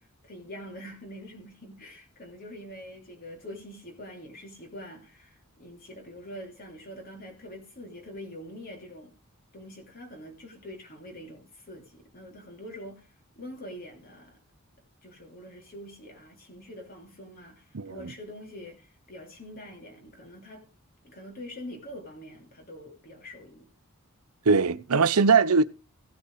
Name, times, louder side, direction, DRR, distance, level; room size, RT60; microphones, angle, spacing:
voice 1, 0.2-9.1 9.5-13.1 13.4-14.4 15.0-20.7 21.0-23.7, equal, 45° left, 3.3 m, -44 dB
voice 2, 17.7-18.1 24.5-25.6, right 5 dB, 90° right, 0.8 m, -21 dB
16.0 x 6.9 x 4.8 m
head